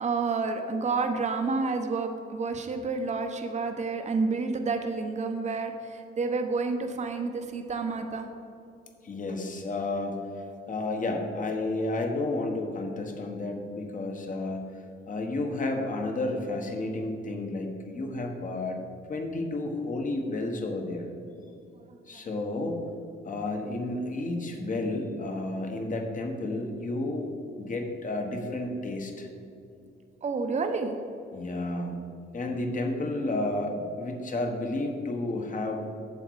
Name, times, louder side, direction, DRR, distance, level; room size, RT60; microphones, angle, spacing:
voice 1, 0.0-8.3 21.7-22.3 30.2-31.0, right 4 dB, 35° right, 5 dB, 0.9 m, -30 dB
voice 2, 9.0-14.6 15.1-18.8 19.1-21.1 22.1-22.8 23.2-27.3 27.6-29.3 31.3-32.0 32.3-36.0, left 2 dB, 40° left, 3 dB, 1.4 m, -31 dB
8.4 x 7.0 x 4.7 m, 2.6 s
cardioid pair, 90°, 20 cm